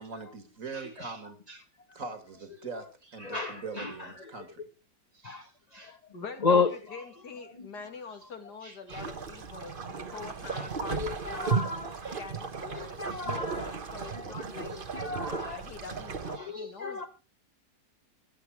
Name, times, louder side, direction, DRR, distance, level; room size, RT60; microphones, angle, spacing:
voice 1, 0.0-1.4 1.9-4.6, right 4 dB, 50° right, 2.3 m, -41 dB
voice 2, 3.2-3.9 5.2-5.4 5.7-5.9 6.4-6.7 8.9-9.0 10.9-11.0 11.3-12.2 12.8-13.7 14.1-14.2 14.6-14.7 14.9-15.6 16.4-17.1, left 4 dB, 30° left, 1.0 m, -31 dB
voice 3, 5.8-9.7 10.1-11.7 12.2-14.9 15.4-17.1, left 4 dB, 70° left, 2.5 m, -44 dB
sound 1, 8.9-16.4, right 5 dB, 35° right, 1.1 m, -35 dB
15.0 x 10.5 x 4.7 m
omnidirectional pair, 1.8 m